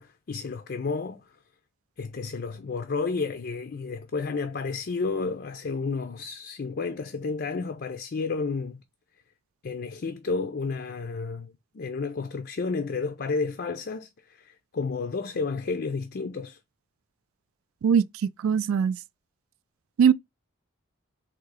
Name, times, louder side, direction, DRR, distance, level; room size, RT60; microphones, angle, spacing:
voice 1, 0.0-1.4 2.0-8.8 9.6-16.6, left 4 dB, 50° left, 0.4 m, -31 dB
voice 2, 17.8-19.0 20.0-20.1, right 7 dB, 75° right, 0.3 m, -21 dB
3.7 x 2.8 x 4.7 m
head